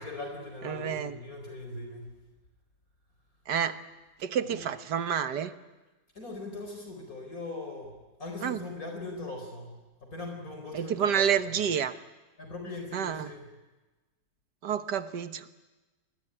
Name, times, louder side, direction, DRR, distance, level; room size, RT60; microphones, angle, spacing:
voice 1, 0.0-2.1 4.5-4.6 6.1-7.9 8.2-9.7 10.0-11.6 12.4-13.5, left 2 dB, 55° left, 3 dB, 4.6 m, -40 dB
voice 2, 0.6-1.1 3.5-3.8 4.2-5.5 8.4-8.6 10.7-11.9 12.9-13.3 14.6-15.5, right 8 dB, 80° right, 11 dB, 1.8 m, -29 dB
28.5 x 21.0 x 10.0 m, 1.2 s
omnidirectional pair, 1.8 m